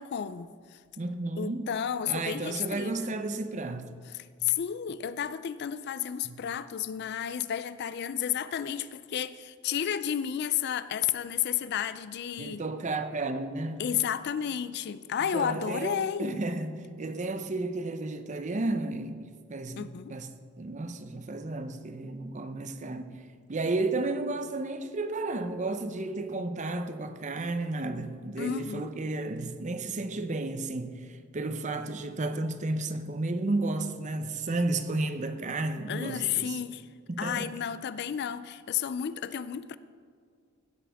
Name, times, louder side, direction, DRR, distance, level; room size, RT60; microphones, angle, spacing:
voice 1, 0.0-0.8 1.4-3.1 4.1-12.6 13.8-16.4 19.8-20.1 28.4-28.9 35.9-36.9 37.2-39.8, left 9 dB, 50° left, 0.3 m, -32 dB
voice 2, 1.0-1.7 2.0-3.9 6.2-6.4 12.4-13.9 15.3-20.3 20.6-23.1 23.5-36.6 37.1-37.5, right 2 dB, 35° right, 0.6 m, -32 dB
16.5 x 7.9 x 3.5 m
head